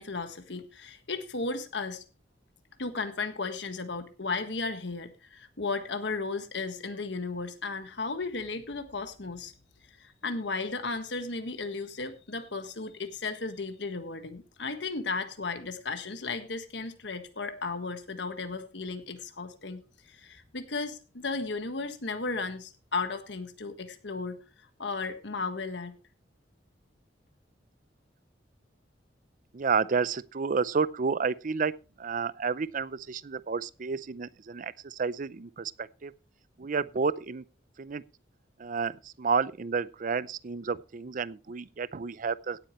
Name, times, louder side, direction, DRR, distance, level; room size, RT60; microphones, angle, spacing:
voice 1, 0.0-2.0 2.8-9.5 10.0-19.8 20.1-24.4 24.8-25.9, left 3 dB, 70° left, 1.5 m, -35 dB
voice 2, 29.5-31.7 32.0-36.1 36.6-37.4 37.8-38.0 38.6-42.6, right 5 dB, 45° right, 0.5 m, -30 dB
17.0 x 8.7 x 3.1 m
head